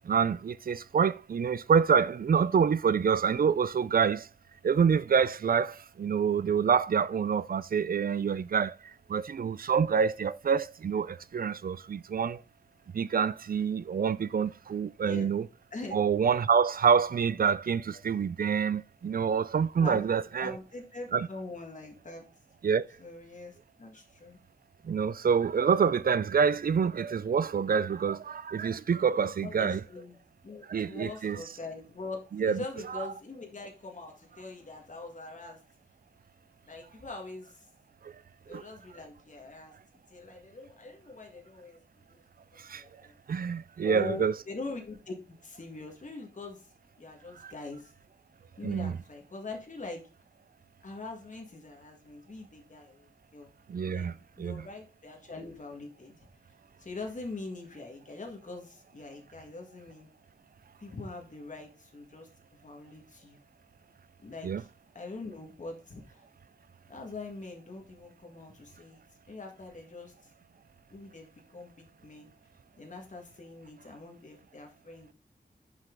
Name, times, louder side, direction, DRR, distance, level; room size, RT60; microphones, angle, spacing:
voice 1, 0.0-4.3 4.6-8.8 9.1-12.4 12.9-15.5 15.9-20.6 21.1-21.3 22.6-22.8 24.8-29.8 30.7-31.4 32.4-32.6 38.0-38.1 38.5-38.6 42.6-42.8 43.3-44.3 47.4-47.5 48.6-49.0 53.7-54.7 64.4-64.6, right 6 dB, 60° right, 0.4 m, -27 dB
voice 2, 15.7-16.1 19.8-20.1 20.4-22.2 23.0-24.4 29.4-30.2 30.4-35.6 36.7-37.7 38.5-39.7 40.1-42.2 42.5-43.1 43.8-46.7 47.0-47.9 48.6-50.1 50.8-53.5 53.9-54.1 54.4-56.3 56.8-60.1 60.8-62.3 62.6-63.4 64.2-64.7 65.0-66.2 66.9-69.0 69.3-70.1 70.9-72.3 72.8-75.1, left 3 dB, 50° left, 1.8 m, -43 dB
5.9 x 5.6 x 3.8 m
wide cardioid pair, 75°, 17 cm